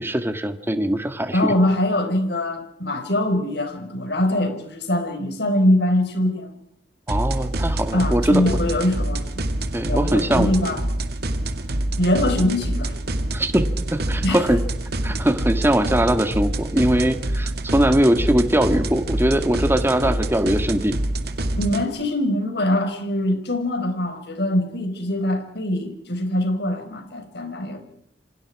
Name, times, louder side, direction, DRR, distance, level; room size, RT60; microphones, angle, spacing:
voice 1, 0.0-1.5 7.1-8.4 9.7-10.5 13.3-14.6 15.0-21.0, right 1 dB, 15° right, 8 dB, 1.8 m, -21 dB
voice 2, 1.3-6.5 7.9-9.2 9.9-10.8 12.0-12.9 14.2-14.4 20.0-20.1 21.6-27.8, left 1 dB, 65° left, 7 dB, 4.9 m, -23 dB
sound 1, 7.1-21.8, right 1 dB, 60° right, 2.3 m, -26 dB
28.0 x 26.5 x 4.9 m, 0.74 s
head